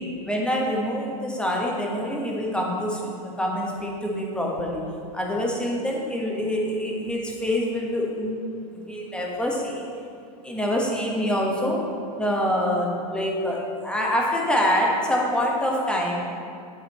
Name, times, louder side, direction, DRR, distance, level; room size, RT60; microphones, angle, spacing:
voice 1, 0.3-4.8 5.1-9.8 10.4-11.8 12.2-16.2, equal, 5° left, -2 dB, 1.2 m, -26 dB
10.5 x 4.2 x 4.2 m, 2.5 s
hypercardioid pair, 120°, 21 cm